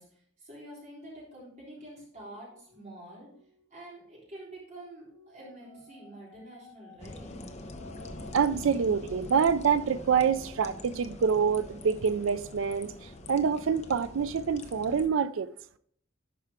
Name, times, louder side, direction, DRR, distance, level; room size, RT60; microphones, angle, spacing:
voice 1, 0.0-3.3 3.7-7.3, right 1 dB, 35° right, 3.5 m, -47 dB
sound 1, 2.2-4.3 4.9-12.6 12.9-14.4, left 2 dB, 20° left, 2.3 m, -57 dB
sound 2, 7.0-15.1, left 2 dB, 35° left, 0.7 m, -45 dB
voice 2, 8.3-12.9 13.3-15.5, right 6 dB, 70° right, 0.4 m, -26 dB
11.0 x 4.8 x 3.6 m
head